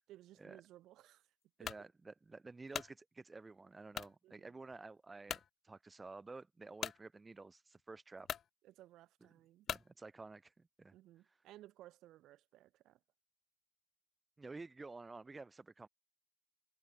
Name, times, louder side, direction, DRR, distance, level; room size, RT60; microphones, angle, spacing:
voice 1, 0.1-1.3 1.6-1.7 4.2-4.5 8.6-9.7 10.9-13.0, right 14 dB, 65° right, 2.6 m, -59 dB
sound 1, 1.6-1.9 2.4-3.0 3.9-4.2 4.7-4.8 5.3-5.5 6.8-7.0 7.8-7.9 8.2-8.5 9.7-9.9, left 8 dB, 50° left, 0.6 m, -42 dB
voice 2, 1.6-8.3 9.7-10.9 14.4-15.9, right 3 dB, 20° right, 2.0 m, -52 dB
supercardioid pair, 75°, 0 cm